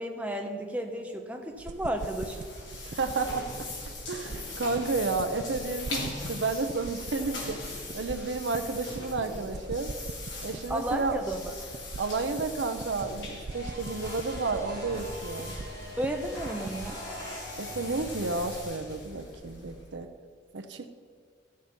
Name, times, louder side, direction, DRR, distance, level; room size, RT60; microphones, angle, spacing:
voice 1, 0.0-2.4 10.7-11.5 16.0-17.0, right 1 dB, 5° right, 3 dB, 0.9 m, -33 dB
sound 1, 1.5-20.0, left 2 dB, 85° left, 3.2 m, -41 dB
sound 2, 1.6-16.9, right 3 dB, 40° right, 0.3 m, -43 dB
voice 2, 2.8-3.7 4.1-7.6 7.9-9.9 10.4-11.2 12.0-15.5 17.6-20.1 20.5-20.9, right 3 dB, 80° right, 6 dB, 0.6 m, -31 dB
sound 3, 13.5-18.6, equal, 20° left, 2.7 m, -42 dB
14.0 x 6.6 x 5.4 m, 2.1 s
head